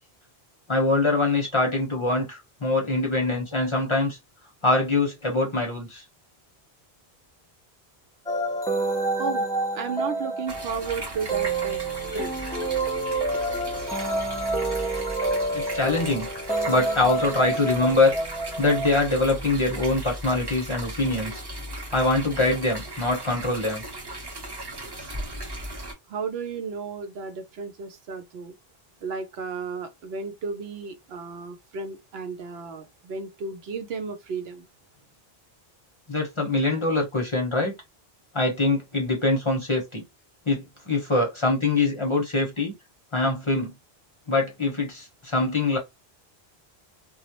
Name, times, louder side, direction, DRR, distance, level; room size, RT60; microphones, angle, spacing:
voice 1, 0.7-4.2 4.6-6.0 15.5-16.3 16.7-18.1 18.6-21.4 21.9-23.8 36.1-37.7 38.3-40.0 40.5-42.7 43.1-43.7 44.3-45.8, left 2 dB, 35° left, 0.7 m, -24 dB
sound 1, 8.3-19.0, right 2 dB, 5° left, 0.4 m, -28 dB
voice 2, 9.7-11.9 12.1-12.4 26.1-28.5 29.0-34.7, right 5 dB, 75° right, 0.8 m, -33 dB
sound 2, 10.5-25.9, right 1 dB, 25° right, 0.7 m, -37 dB
2.3 x 2.0 x 2.8 m
omnidirectional pair, 1.0 m